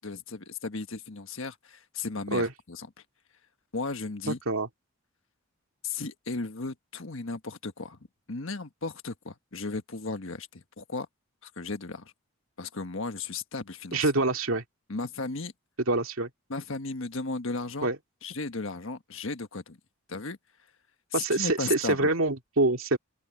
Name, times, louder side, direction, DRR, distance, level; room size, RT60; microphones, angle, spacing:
voice 1, 0.0-2.9 3.7-4.4 5.8-8.0 8.3-11.1 11.4-12.1 12.6-14.1 14.9-15.5 16.5-17.9 18.2-19.8 20.1-20.4 21.1-22.1, left 3 dB, 65° left, 1.4 m, -35 dB
voice 2, 4.3-4.7 13.9-14.6 15.9-16.3 17.8-18.0 21.1-23.0, right 2 dB, 70° right, 2.2 m, -26 dB
open air
head